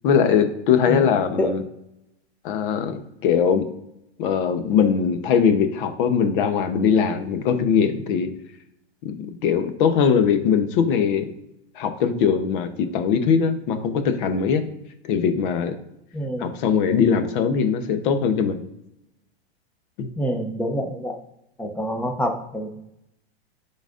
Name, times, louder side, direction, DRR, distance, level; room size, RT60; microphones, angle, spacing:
voice 1, 0.0-1.6 2.4-3.7 4.2-8.3 9.0-11.3 11.8-14.6 15.0-15.7 16.4-18.6 20.0-20.1, left 7 dB, 50° left, 8 dB, 0.9 m, -21 dB
voice 2, 16.1-16.5 20.2-21.2 21.6-22.8, equal, 5° left, 3 dB, 0.7 m, -26 dB
10.0 x 4.1 x 2.6 m, 0.82 s
hypercardioid pair, 135°, 32 cm